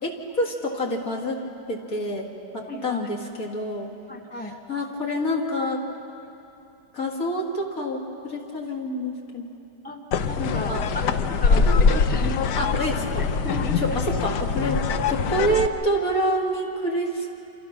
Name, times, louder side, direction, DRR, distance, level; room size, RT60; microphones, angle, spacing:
voice 1, 0.0-1.4 1.7-3.9 4.7-5.8 6.9-9.5 10.4-10.9 12.6-13.2 13.8-14.8 15.1-17.4, equal, 50° left, 0 dB, 2.8 m, -27 dB
voice 2, 2.7-3.1 4.1-4.6 9.8-12.7 13.4-14.0 15.4-15.6, left 1 dB, 5° left, 4 dB, 0.9 m, -34 dB
sound 1, 10.1-15.7, left 5 dB, 70° left, 1.4 m, -23 dB
28.0 x 27.0 x 6.0 m, 2.8 s
omnidirectional pair, 1.9 m